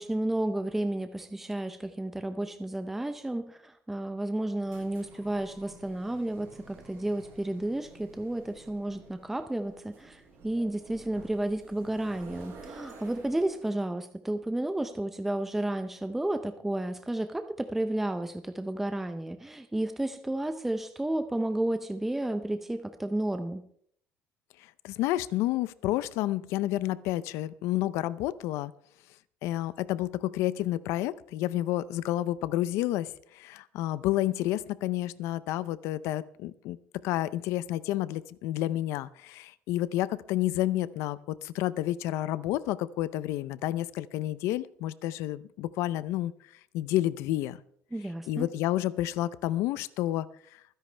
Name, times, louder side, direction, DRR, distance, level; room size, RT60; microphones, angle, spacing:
voice 1, 0.0-23.6 47.9-48.5, right 1 dB, 5° right, 8 dB, 0.6 m, -32 dB
sound 1, 4.4-13.7, right 3 dB, 55° right, 7.7 m, -51 dB
voice 2, 24.8-28.7 29.4-36.8 37.0-46.3 46.7-47.6 48.3-50.3, left 14 dB, 80° left, 17 dB, 0.6 m, -30 dB
24.0 x 10.5 x 3.3 m, 0.65 s
cardioid pair, 160°, 5 cm